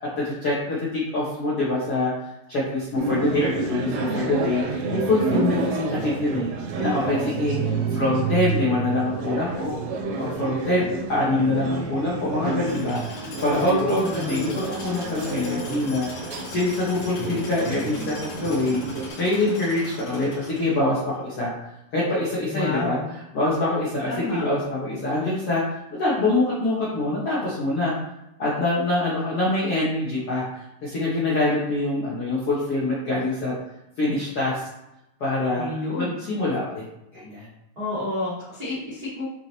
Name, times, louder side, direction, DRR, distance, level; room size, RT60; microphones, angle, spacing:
voice 1, 0.0-6.5 6.8-16.1 16.4-18.8 19.2-21.5 21.9-23.0 23.3-25.6 25.9-27.9 28.4-33.5 34.0-34.7 35.2-35.7 36.0-36.8 37.1-37.5, left 2 dB, 85° left, -8 dB, 1.2 m, -25 dB
sound 1, 3.0-19.1, right 4 dB, 85° right, 3.6 m, -29 dB
voice 2, 3.1-3.5 13.9-14.3 22.5-23.0 24.0-24.4 35.5-36.1 37.7-39.2, left 2 dB, 45° right, -11 dB, 1.2 m, -30 dB
Tools, 12.6-20.9, left 2 dB, 50° left, 3.9 m, -39 dB
9.2 x 5.1 x 3.0 m, 0.88 s
omnidirectional pair, 5.5 m